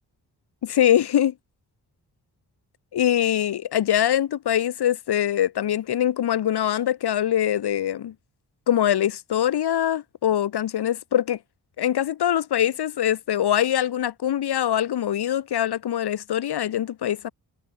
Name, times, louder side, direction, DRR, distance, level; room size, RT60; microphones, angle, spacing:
voice 1, 0.6-1.3 2.9-8.1 8.7-11.4 11.8-17.3, left 11 dB, 80° left, 1.9 m, -23 dB
wide cardioid pair, 145°, 39 cm